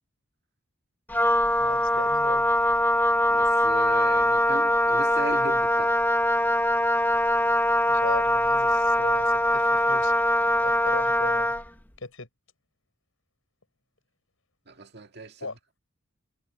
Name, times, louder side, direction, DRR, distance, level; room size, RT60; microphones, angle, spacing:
Wind instrument woodwind instrument, 1.1-11.7, left 1 dB, 10° left, 0.9 m, -22 dB
voice 1, 1.6-2.5 7.9-10.2 10.6-11.5 12.0-12.3 15.4-15.6, left 3 dB, 90° left, 6.2 m, -37 dB
voice 2, 3.3-6.0 14.7-15.5, right 2 dB, 55° right, 2.0 m, -38 dB
head